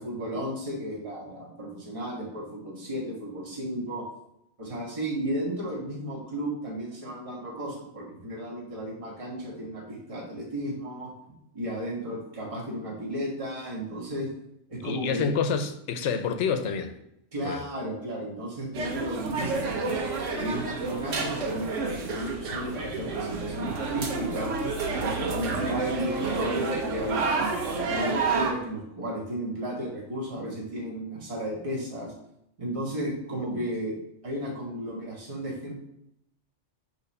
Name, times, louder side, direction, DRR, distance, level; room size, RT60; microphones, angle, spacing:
voice 1, 0.0-4.0 4.6-11.1 11.5-14.3 14.7-15.3 17.3-20.0 20.4-24.5 24.9-27.4 27.9-32.1 32.6-33.9 34.2-35.8, equal, 30° right, -2 dB, 1.4 m, -34 dB
voice 2, 14.8-16.9 17.4-17.6, left 6 dB, 75° left, 9 dB, 0.9 m, -28 dB
sound 1, 18.7-28.5, right 4 dB, 85° right, 1.2 m, -29 dB
6.6 x 3.1 x 5.3 m, 0.78 s
omnidirectional pair, 1.2 m